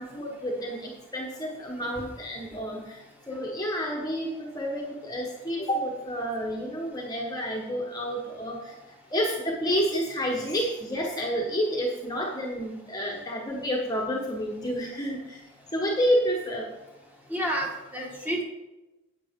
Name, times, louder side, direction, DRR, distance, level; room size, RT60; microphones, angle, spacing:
voice 1, 0.0-8.7 9.1-15.4 15.7-16.7, equal, 15° left, -1 dB, 1.1 m, -29 dB
voice 2, 17.3-18.4, right 1 dB, 10° right, -1 dB, 1.5 m, -30 dB
10.0 x 8.2 x 3.6 m, 1.0 s
head